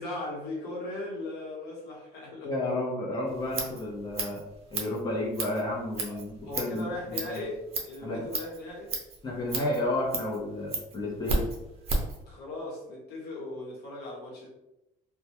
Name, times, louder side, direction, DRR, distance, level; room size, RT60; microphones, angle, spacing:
voice 1, 0.0-2.5 6.1-6.2 6.5-7.6 7.8-8.9 12.3-14.5, left 2 dB, 80° left, -3 dB, 1.0 m, -38 dB
voice 2, 2.4-4.4 4.7-6.9 7.2-7.4 8.0-8.3 9.2-11.5, left 1 dB, 25° left, -3 dB, 0.6 m, -31 dB
Scissors, 3.3-12.2, right 3 dB, 40° right, 0.6 m, -35 dB
2.2 x 2.2 x 2.8 m, 0.90 s
cardioid pair, 130°, 16 cm